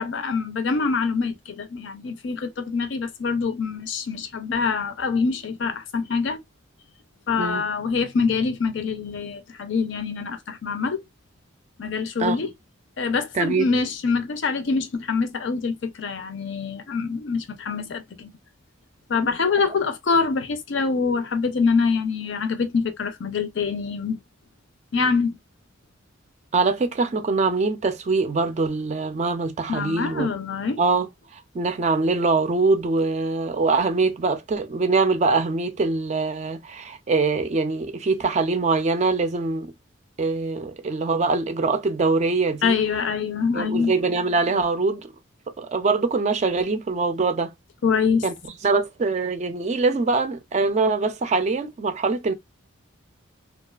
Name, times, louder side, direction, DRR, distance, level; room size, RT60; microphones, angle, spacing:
voice 1, 0.0-6.4 7.3-11.0 11.8-12.5 13.0-18.3 19.1-24.2 24.9-25.4 29.7-30.8 42.6-43.9 47.8-48.2, left 5 dB, 65° left, 0.5 m, -25 dB
voice 2, 7.3-7.7 12.2-12.4 13.3-13.7 19.6-19.7 26.5-30.3 30.8-39.7 40.2-42.8 43.5-45.1 45.6-47.5 48.2-48.3 48.6-52.3, right 3 dB, 35° right, 0.3 m, -23 dB
2.3 x 2.3 x 2.3 m
head